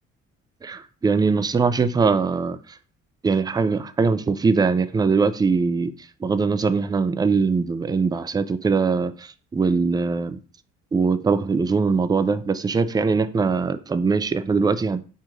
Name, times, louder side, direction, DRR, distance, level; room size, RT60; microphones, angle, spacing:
voice 1, 0.6-2.8 3.2-5.9 6.2-10.4 10.9-15.0, right 4 dB, 15° right, 0.3 m, -22 dB
4.6 x 2.5 x 4.5 m
cardioid pair, 80°, 29 cm